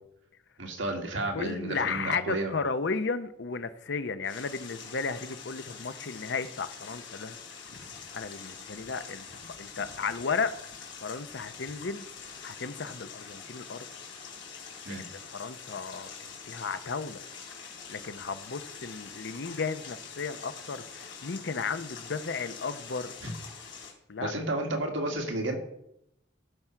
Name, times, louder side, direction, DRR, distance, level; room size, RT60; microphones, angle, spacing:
voice 1, 0.6-2.5 14.9-15.0 23.2-23.3 24.2-25.5, right 2 dB, 80° right, 1.8 m, -32 dB
voice 2, 1.3-7.4 8.1-9.3 9.6-10.5 11.0-13.9 14.9-17.2 17.9-23.1 24.1-24.3, left 5 dB, 65° left, 0.7 m, -34 dB
sound 1, 4.2-23.9, left 6 dB, 85° left, 3.0 m, -45 dB
14.0 x 6.1 x 4.5 m
head